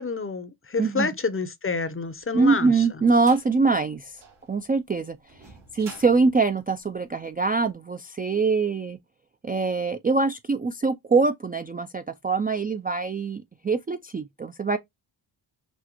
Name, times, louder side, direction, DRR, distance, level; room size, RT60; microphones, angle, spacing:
voice 1, 0.0-3.0, left 4 dB, 25° left, 0.6 m, -29 dB
sound 1, 2.2-7.5, right 4 dB, 85° right, 2.9 m, -49 dB
voice 2, 2.3-4.2 4.5-5.2 5.7-9.0 9.4-14.8, right 4 dB, 20° right, 0.3 m, -23 dB
6.1 x 2.1 x 2.9 m
cardioid pair, 65°, 49 cm